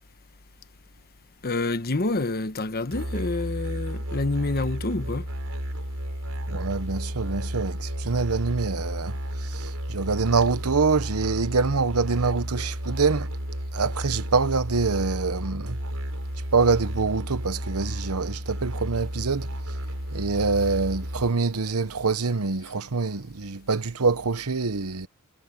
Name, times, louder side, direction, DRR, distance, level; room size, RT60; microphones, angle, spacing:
voice 1, 1.4-5.3, left 2 dB, 45° left, 1.1 m, -27 dB
Musical instrument, 2.9-21.3, equal, 70° right, 6.9 m, -32 dB
voice 2, 6.5-13.3 13.7-15.8 16.5-19.8 20.1-25.1, right 4 dB, 90° right, 1.0 m, -25 dB
head